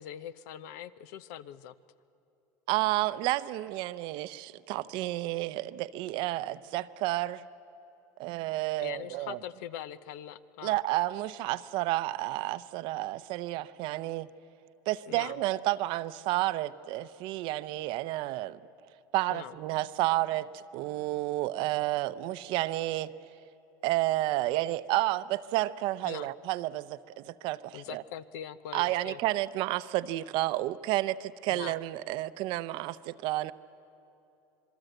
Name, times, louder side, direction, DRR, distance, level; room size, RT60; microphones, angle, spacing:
voice 1, 0.0-1.7 8.8-10.8 15.0-15.4 19.3-19.6 26.0-26.3 27.7-29.2 31.5-31.7, left 10 dB, 70° left, 15 dB, 0.7 m, -42 dB
voice 2, 2.7-7.4 8.2-9.4 10.6-14.3 14.9-18.6 19.1-23.1 23.8-28.0 28.7-33.5, right 17 dB, 60° right, 14 dB, 0.7 m, -31 dB
26.0 x 21.5 x 8.0 m, 2.9 s
supercardioid pair, 115°, 10 cm